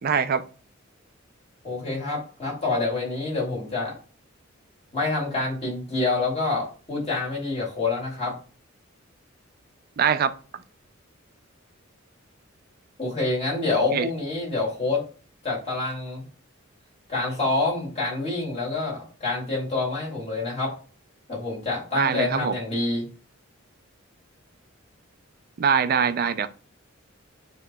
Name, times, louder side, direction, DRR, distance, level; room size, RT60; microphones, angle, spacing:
voice 1, 0.0-0.4 10.0-10.3 13.9-14.1 22.0-22.5 25.6-26.5, right 7 dB, 45° right, 0.4 m, -22 dB
voice 2, 1.6-4.0 4.9-8.3 13.0-15.0 15.4-16.2 17.1-20.7 21.3-23.1, left 3 dB, 30° left, 2.3 m, -27 dB
7.2 x 2.9 x 2.3 m
head